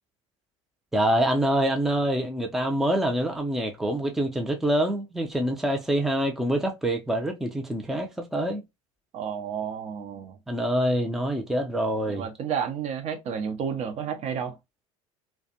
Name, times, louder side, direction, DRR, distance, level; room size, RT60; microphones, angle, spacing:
voice 1, 0.9-8.6 10.5-12.3, right 1 dB, ahead, 0.5 m, -26 dB
voice 2, 9.1-10.4 12.1-14.5, right 7 dB, 40° right, 0.7 m, -31 dB
2.4 x 2.2 x 2.7 m
figure-of-eight pair, 70°, 17 cm